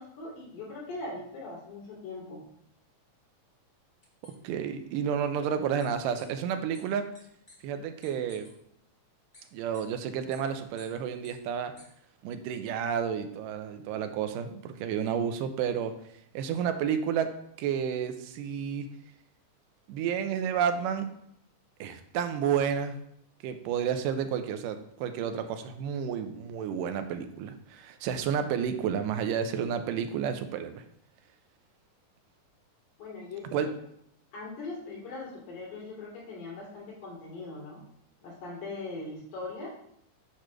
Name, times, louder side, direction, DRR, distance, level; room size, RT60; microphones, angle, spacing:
voice 1, 0.0-2.4 33.0-33.7 34.3-37.8 38.2-39.7, left 3 dB, 70° left, -6 dB, 4.3 m, -40 dB
sound 1, 4.0-4.3 5.8-5.9 6.1-6.2 6.7-6.8 7.1-7.2 7.5-7.6 8.0-8.5 9.3-9.4 9.7-9.8 10.3-10.4 10.8-10.9 11.2-11.3 11.8-11.9, left 2 dB, 25° left, 1.4 m, -53 dB
voice 2, 4.4-7.1 7.6-8.5 9.5-11.7 12.2-15.9 16.3-17.3 17.6-18.9 19.9-21.1 21.8-23.0 23.4-30.8 33.5-33.7, right 8 dB, 85° right, 9 dB, 2.3 m, -31 dB
8.6 x 3.2 x 6.1 m, 0.72 s
omnidirectional pair, 3.7 m